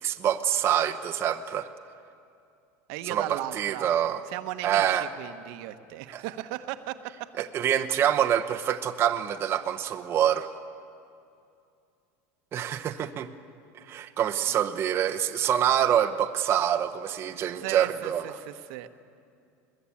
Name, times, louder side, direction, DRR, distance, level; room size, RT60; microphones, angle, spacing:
voice 1, 0.0-1.7 3.0-4.2 4.6-5.1 6.1-6.2 7.4-10.5 12.5-13.3 13.7-18.2, right 10 dB, 30° right, 6 dB, 0.9 m, -26 dB
voice 2, 2.9-3.9 4.3-7.5 17.5-18.9, right 14 dB, 60° right, 9 dB, 1.1 m, -36 dB
21.5 x 21.0 x 8.5 m, 2.5 s
supercardioid pair, 135°, 8 cm